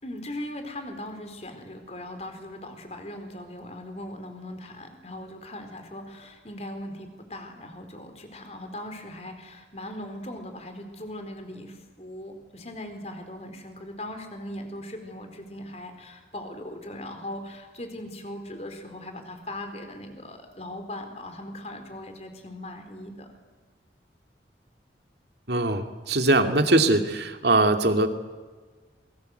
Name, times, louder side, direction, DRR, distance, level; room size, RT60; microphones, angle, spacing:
voice 1, 0.0-23.3, left 1 dB, 35° left, 6 dB, 4.3 m, -39 dB
voice 2, 25.5-28.1, right 2 dB, 65° right, 6 dB, 2.4 m, -21 dB
27.5 x 24.0 x 8.0 m, 1.4 s
head